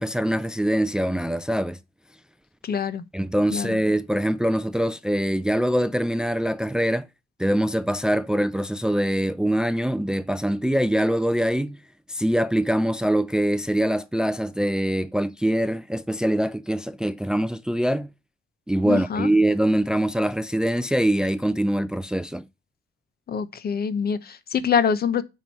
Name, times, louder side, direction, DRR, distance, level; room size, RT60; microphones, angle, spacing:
voice 1, 0.0-1.8 3.1-7.1 7.4-11.8 12.1-18.1 18.7-22.4, right 1 dB, 5° right, 0.5 m, -23 dB
voice 2, 2.6-3.0 3.5-3.8 18.8-19.3 23.3-25.2, left 7 dB, 50° left, 1.0 m, -25 dB
7.8 x 4.8 x 5.4 m
cardioid pair, 90°, 20 cm